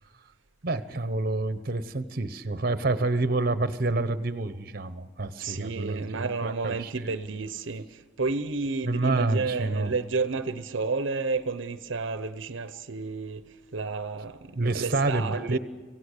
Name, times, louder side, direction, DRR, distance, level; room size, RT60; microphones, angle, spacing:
voice 1, 0.6-7.1 8.8-9.9 14.6-15.6, right 2 dB, 50° right, 1.0 m, -28 dB
voice 2, 5.4-13.4 13.7-15.6, right 4 dB, 75° right, 0.8 m, -31 dB
25.5 x 16.5 x 6.6 m
head